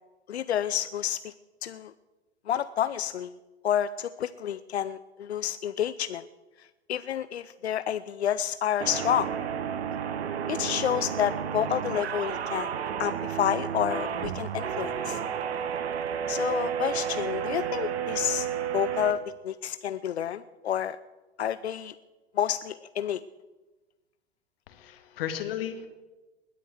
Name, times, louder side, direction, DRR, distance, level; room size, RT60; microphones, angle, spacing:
voice 1, 0.3-1.3 1.6-1.9 2.5-3.3 3.6-6.3 6.9-9.3 10.5-12.7 13.0-15.2 16.3-18.5 18.7-21.0 21.4-21.9 22.4-23.2, left 10 dB, 80° left, 14 dB, 0.6 m, -29 dB
sound 1, 8.8-19.1, right 8 dB, 75° right, 1.4 m, -31 dB
voice 2, 24.7-25.9, left 10 dB, 60° left, 7 dB, 2.2 m, -34 dB
20.5 x 8.5 x 7.8 m, 1.1 s
figure-of-eight pair, 95°, 32 cm